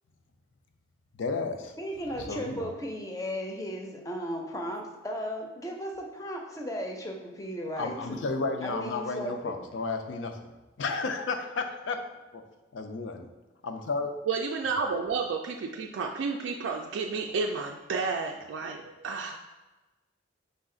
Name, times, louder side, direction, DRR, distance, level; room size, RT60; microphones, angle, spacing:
voice 1, 1.2-1.7 2.2-2.7 7.8-10.4 10.8-12.0 12.3-12.4 12.7-13.3 13.6-14.1, left 4 dB, 85° left, 6 dB, 0.5 m, -32 dB
voice 2, 1.8-8.3 8.6-9.6, equal, 15° left, 2 dB, 0.5 m, -36 dB
voice 3, 14.3-19.4, right 4 dB, 80° right, 2 dB, 0.3 m, -31 dB
5.1 x 2.4 x 3.7 m, 1.1 s
head